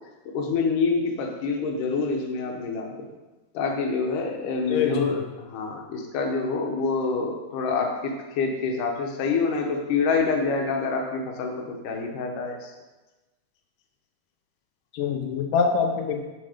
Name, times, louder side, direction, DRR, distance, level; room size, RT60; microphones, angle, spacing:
voice 1, 0.3-3.1 3.5-12.7, left 4 dB, 70° left, 2 dB, 2.1 m, -27 dB
voice 2, 4.7-5.2 14.9-16.2, left 6 dB, 85° left, 2 dB, 1.9 m, -25 dB
9.6 x 5.3 x 5.0 m, 1.2 s
omnidirectional pair, 4.8 m